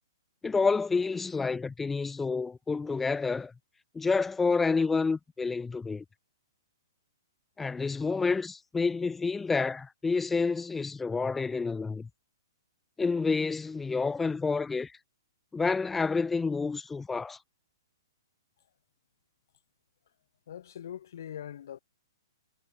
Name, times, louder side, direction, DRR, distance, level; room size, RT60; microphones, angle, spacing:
voice 1, 0.4-3.5 3.9-6.0 7.6-12.1 13.0-14.9 15.5-17.4, left 4 dB, 10° left, 0.3 m, -29 dB
voice 2, 20.5-21.8, left 10 dB, 55° left, 1.0 m, -42 dB
figure-of-eight pair, 115°, 2 cm